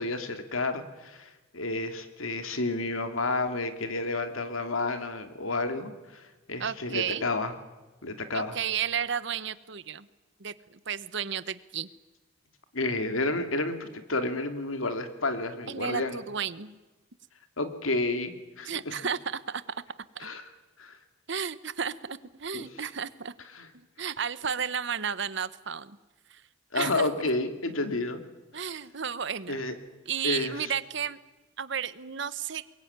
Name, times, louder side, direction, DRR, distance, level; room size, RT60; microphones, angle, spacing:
voice 1, 0.0-7.5 8.0-8.6 12.7-16.2 17.6-19.0 20.2-20.5 20.8-21.0 22.5-22.7 23.5-23.7 26.7-28.2 28.5-28.7 29.5-29.7 30.2-30.7, left 2 dB, 90° left, 8 dB, 2.6 m, -31 dB
voice 2, 6.6-7.3 8.3-10.1 10.4-11.9 15.7-16.8 18.6-19.8 20.1-20.3 21.3-23.3 24.0-25.9 26.3-26.4 26.7-27.1 28.5-29.6 30.1-31.2 31.6-32.6, right 7 dB, 60° right, 15 dB, 1.0 m, -33 dB
22.5 x 22.5 x 9.6 m, 1.2 s
head